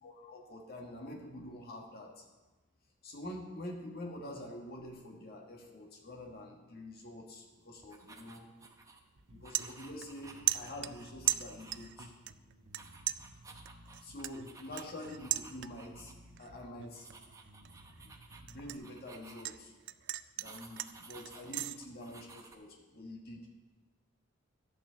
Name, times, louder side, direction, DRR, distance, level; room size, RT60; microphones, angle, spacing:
voice 1, 0.0-2.2 3.0-8.5 9.3-12.1 14.0-16.1 16.4-17.1 18.0-18.1 18.4-19.7 20.4-23.5, left 1 dB, 55° left, 1 dB, 1.5 m, -46 dB
sound 1, 7.8-9.0 9.4-12.4 12.7-16.1 16.4-16.6 16.9-19.7 20.4-22.5, right 3 dB, 15° right, 0.7 m, -55 dB
sound 2, 8.6-8.8 9.2-10.2 10.5-12.0 12.3-12.8 13.1-16.0 16.4-16.7 17.1-19.6 19.9-21.8, right 15 dB, 60° right, 0.3 m, -37 dB
Bass guitar, 9.2-18.8, right 1 dB, 85° right, 1.1 m, -56 dB
12.0 x 8.2 x 3.9 m, 1.2 s
head